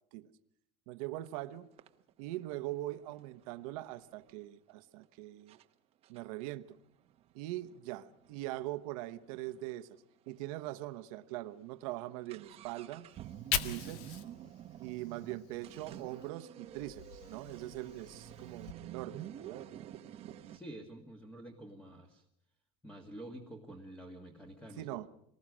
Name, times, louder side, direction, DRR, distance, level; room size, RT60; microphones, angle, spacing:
voice 1, 0.9-1.7 2.2-5.6 6.1-6.8 7.3-13.1 13.5-14.2 14.8-19.6 24.8-25.1, right 16 dB, 70° right, 1.1 m, -42 dB
sound 1, 1.2-1.3 1.8-4.4 5.0-5.1 5.5-5.7 6.0-9.7 10.0-10.1 10.3-10.4 11.0-11.1 11.4-20.6, right 11 dB, 35° right, 1.1 m, -50 dB
Fire, 13.1-16.3 16.7-18.7, left 9 dB, 60° left, 1.8 m, -41 dB
voice 2, 20.4-22.2 22.8-25.1, right 1 dB, 5° left, 1.8 m, -49 dB
26.0 x 20.0 x 6.3 m
cardioid pair, 160°, 18 cm